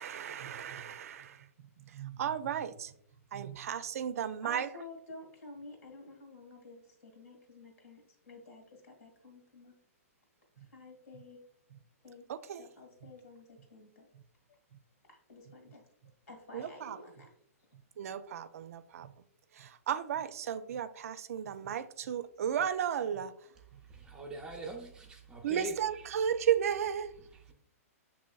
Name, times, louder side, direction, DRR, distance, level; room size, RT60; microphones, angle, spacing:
voice 1, 0.0-1.5 1.8-2.9 3.3-4.7 10.6-10.7 11.1-11.2 11.7-11.8 12.3-12.7 13.0-13.1 16.5-17.0 18.0-19.1 19.5-23.3 25.4-27.2, right 9 dB, 70° right, 0.3 m, -34 dB
voice 2, 4.4-8.0 8.3-9.7 10.7-11.4 12.0-12.2 12.6-14.0 15.1-15.8 16.3-17.3, left 2 dB, 70° left, 1.5 m, -51 dB
voice 3, 23.9-25.7, right 2 dB, 10° right, 0.5 m, -42 dB
6.3 x 2.9 x 2.2 m
hypercardioid pair, 145°, 8 cm